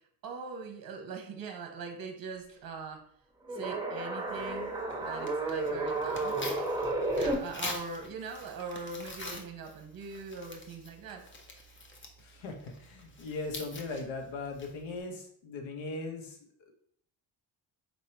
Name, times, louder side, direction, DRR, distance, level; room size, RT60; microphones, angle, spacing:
voice 1, 0.2-3.0 3.5-6.4 7.2-11.2, right 4 dB, 45° right, 5 dB, 0.8 m, -41 dB
sound 1, 3.5-7.3, right 2 dB, 10° right, 1.0 m, -32 dB
Tearing, 4.3-15.0, left 2 dB, 25° left, 0.7 m, -46 dB
voice 2, 12.9-16.3, left 3 dB, 70° left, 4 dB, 1.0 m, -38 dB
4.5 x 3.2 x 2.8 m, 0.65 s
cardioid pair, 75°, 48 cm